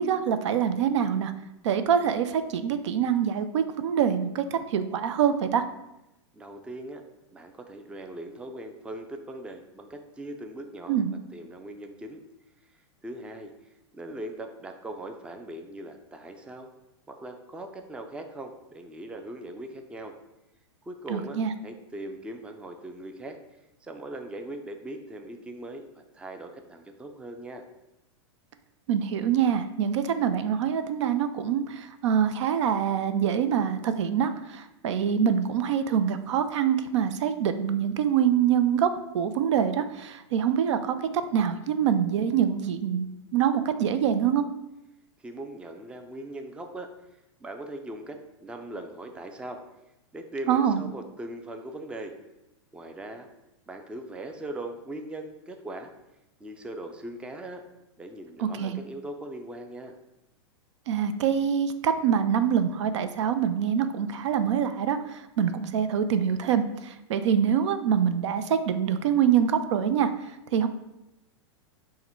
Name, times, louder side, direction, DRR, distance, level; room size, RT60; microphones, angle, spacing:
voice 1, 0.0-1.3 1.6-5.7 10.9-11.1 21.1-21.5 28.9-44.4 50.5-50.8 58.4-58.8 60.9-70.1 70.5-70.7, right 8 dB, 75° right, 10 dB, 0.4 m, -25 dB
voice 2, 6.3-7.0 7.3-11.0 11.3-12.2 13.0-13.5 13.9-16.7 17.1-20.2 20.9-23.4 23.8-27.6 45.2-46.9 47.4-49.6 50.1-52.1 52.7-53.3 53.7-55.9 56.4-57.6 58.0-59.9, right 1 dB, 5° right, 5 dB, 0.4 m, -40 dB
5.5 x 2.1 x 4.4 m, 0.93 s
hypercardioid pair, 120°, 15 cm